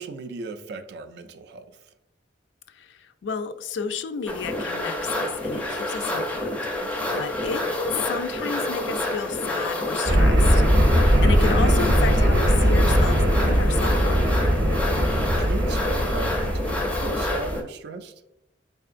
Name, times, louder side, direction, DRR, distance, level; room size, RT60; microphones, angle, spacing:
voice 1, 0.0-1.7 6.8-7.2 14.8-18.1, right 3 dB, 65° right, 9 dB, 0.4 m, -37 dB
voice 2, 3.2-6.9 7.2-14.3, left 6 dB, 75° left, 10 dB, 0.3 m, -32 dB
sound 1, 4.3-17.6, left 1 dB, 10° left, 0.5 m, -28 dB
sound 2, 10.1-17.5, equal, 85° right, 0.7 m, -20 dB
3.7 x 3.4 x 2.4 m, 0.83 s
head